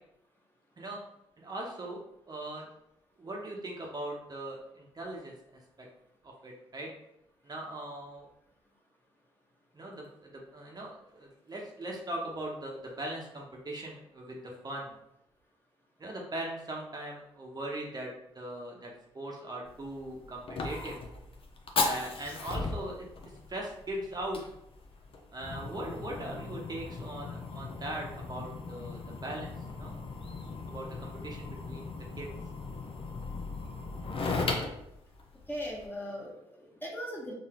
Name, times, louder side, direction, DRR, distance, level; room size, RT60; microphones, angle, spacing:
voice 1, 1.4-2.7 3.2-5.9 6.2-6.9 7.4-8.3 9.7-15.0 16.0-21.0 21.8-24.4 25.3-30.0 30.7-32.3, right 1 dB, 35° right, -1 dB, 0.9 m, -40 dB
Fire, 19.6-35.9, left 3 dB, 50° left, 0.7 m, -37 dB
voice 2, 35.5-37.3, equal, 15° left, -2 dB, 1.2 m, -39 dB
3.8 x 2.7 x 2.9 m, 0.79 s
supercardioid pair, 55°, 12 cm